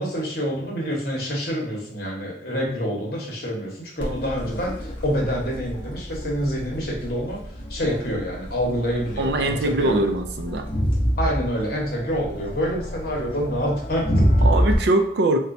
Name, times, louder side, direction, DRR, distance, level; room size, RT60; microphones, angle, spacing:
voice 1, 0.0-10.0 11.2-14.3, equal, 50° left, -2 dB, 0.9 m, -27 dB
Crowd, 4.0-14.7, equal, 25° left, 0.6 m, -27 dB
voice 2, 9.2-10.7 14.4-15.4, right 2 dB, 65° right, 6 dB, 0.4 m, -22 dB
4.2 x 2.2 x 2.5 m, 0.70 s
head